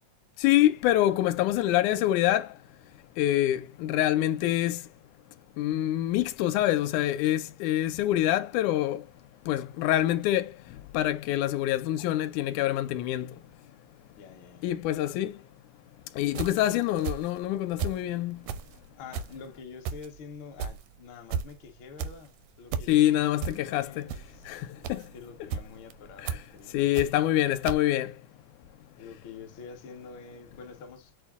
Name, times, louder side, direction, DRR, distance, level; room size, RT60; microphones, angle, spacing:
voice 1, 0.4-2.5 3.2-4.8 5.6-9.0 9.5-10.5 10.9-13.3 14.6-15.4 16.2-18.4 22.9-24.1 24.5-25.0 26.2-26.4 26.7-28.1, left 13 dB, 85° left, 2.0 m, -26 dB
voice 2, 14.1-14.7 15.1-15.2 16.7-16.8 19.0-27.1 29.0-31.1, left 5 dB, 65° left, 1.3 m, -47 dB
sound 1, 16.3-18.1 18.4-27.4 27.6-27.8, right 7 dB, 80° right, 1.5 m, -35 dB
6.2 x 2.1 x 3.5 m
omnidirectional pair, 3.4 m